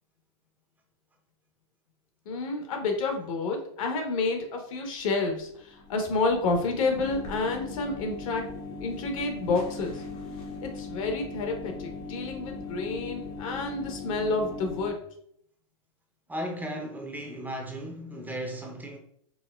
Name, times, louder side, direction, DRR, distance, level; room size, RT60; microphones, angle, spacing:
voice 1, 2.2-8.5 8.8-10.0 10.6-15.0, left 3 dB, 70° left, 0.9 m, -29 dB
sound 1, 5.4-14.9, left 3 dB, 90° left, 1.2 m, -39 dB
voice 2, 16.3-19.0, equal, 10° right, 0.4 m, -35 dB
4.5 x 2.2 x 2.2 m
hypercardioid pair, 125°, 18 cm